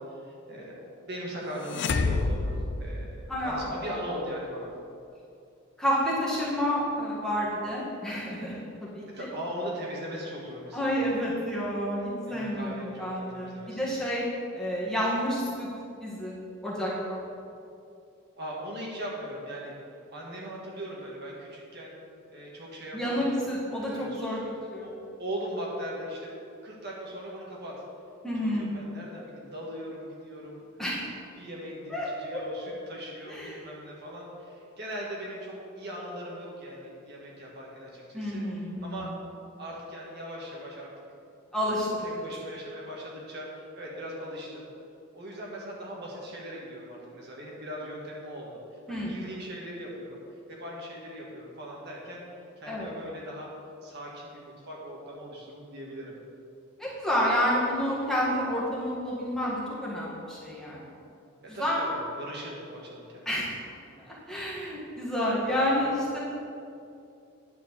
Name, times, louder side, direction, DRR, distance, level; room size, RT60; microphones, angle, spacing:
voice 1, 0.1-4.7 9.2-11.1 12.3-13.9 18.4-19.8 20.1-22.0 22.3-23.4 23.8-24.4 24.8-24.9 25.2-26.4 26.6-27.8 28.4-30.7 31.3-38.4 38.8-39.1 39.6-40.9 42.0-44.7 45.1-50.2 50.5-52.2 52.6-53.5 53.8-56.2 61.4-63.3, equal, 50° right, -3 dB, 1.6 m, -39 dB
sound 1, 1.6-3.7, left 3 dB, 55° left, 0.5 m, -28 dB
voice 2, 3.3-3.7 5.8-9.3 10.7-14.3 14.5-15.7 16.0-16.4 16.6-17.2 22.9-24.9 28.2-28.7 30.8-31.0 31.9-32.4 33.3-33.5 38.1-39.0 41.5-42.2 48.9-49.1 52.7-52.9 56.8-60.8 61.5-61.8 63.3-63.5 64.1-66.2, equal, 5° left, -7 dB, 1.7 m, -29 dB
10.0 x 4.5 x 7.0 m, 2.6 s
head